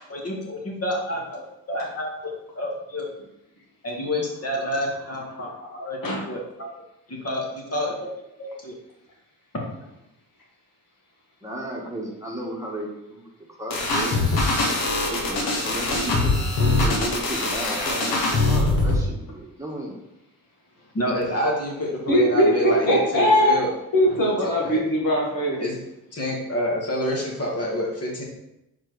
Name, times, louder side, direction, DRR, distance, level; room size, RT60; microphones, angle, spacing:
voice 1, 0.1-1.4 1.7-3.0 3.8-6.0 6.3-6.7 7.1-8.1 8.4-8.7 20.9-23.7 24.4-24.8 25.6-25.8 26.1-28.2, equal, 40° left, -1 dB, 1.9 m, -28 dB
voice 2, 11.4-13.2 13.6-14.2 15.1-20.0, right 1 dB, 10° right, -2 dB, 1.4 m, -34 dB
sound 1, 13.7-19.0, left 2 dB, 90° left, 1.4 m, -22 dB
voice 3, 22.1-23.6 23.9-25.6, equal, 65° left, -3 dB, 2.0 m, -20 dB
4.5 x 4.5 x 4.6 m, 0.89 s
cardioid pair, 75°, 36 cm